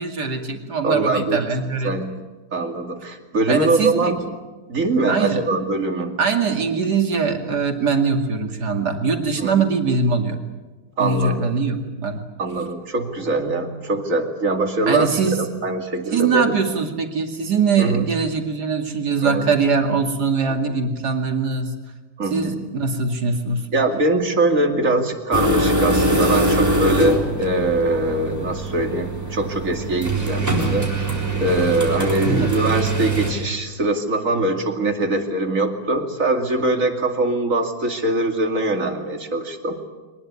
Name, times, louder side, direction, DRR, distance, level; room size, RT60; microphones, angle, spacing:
voice 1, 0.0-1.9 3.5-4.1 5.1-5.4 6.2-10.4 11.0-12.2 14.9-15.4 16.1-21.7 22.3-23.6 32.2-32.5, right 5 dB, 65° right, 5 dB, 2.9 m, -22 dB
voice 2, 0.8-1.5 1.8-2.2 2.5-4.3 4.7-6.2 9.4-9.6 11.0-11.5 12.4-15.1 15.4-16.5 17.8-18.1 19.2-19.4 20.6-20.7 22.2-22.5 23.7-30.9 31.4-39.8, right 2 dB, 50° right, 5 dB, 2.8 m, -22 dB
sound 1, 25.3-33.3, right 1 dB, 10° right, 3.9 m, -22 dB
23.5 x 20.0 x 9.7 m, 1.2 s
omnidirectional pair, 1.9 m